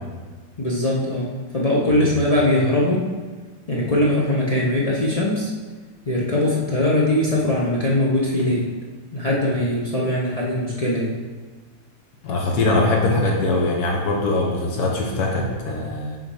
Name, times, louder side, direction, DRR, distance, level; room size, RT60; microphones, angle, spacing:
voice 1, 0.6-3.1 3.7-5.5 6.1-8.7 9.1-11.2, left 1 dB, 45° left, -5 dB, 0.5 m, -21 dB
voice 2, 12.2-16.2, left 2 dB, 70° left, 0 dB, 1.4 m, -22 dB
5.8 x 3.8 x 4.8 m, 1.4 s
omnidirectional pair, 1.7 m